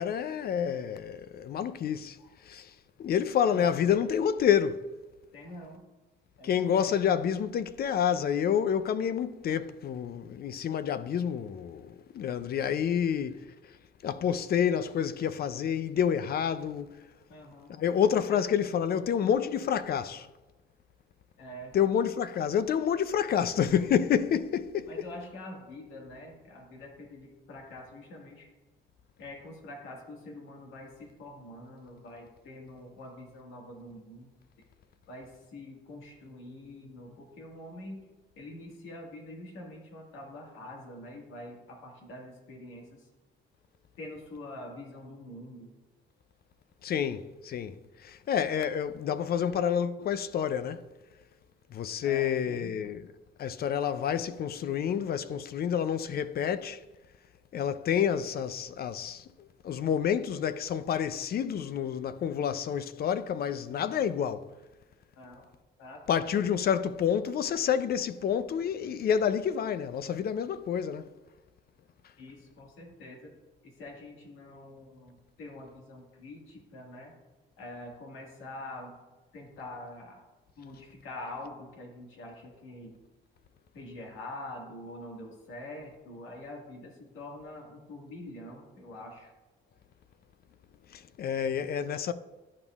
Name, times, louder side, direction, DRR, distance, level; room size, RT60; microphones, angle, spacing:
voice 1, 0.0-2.2 2.5-2.7 3.0-4.9 6.4-13.5 14.0-17.0 17.8-20.3 21.7-24.9 46.8-50.8 51.7-53.1 53.4-56.8 57.5-64.5 66.1-71.1 90.9-92.1, left 8 dB, 50° left, 0.4 m, -28 dB
voice 2, 3.5-3.9 5.3-5.8 6.4-7.0 17.3-17.7 18.3-18.4 21.4-21.8 22.3-22.4 24.9-28.5 29.2-34.3 35.1-38.1 38.4-43.1 44.0-45.7 52.0-52.8 65.2-65.5 65.8-66.2 72.2-73.3 73.6-77.1 77.6-79.0 79.3-80.2 80.6-83.0 83.7-89.3, left 1 dB, 85° left, 1.7 m, -45 dB
11.5 x 5.3 x 2.4 m
cardioid pair, 90°, 20 cm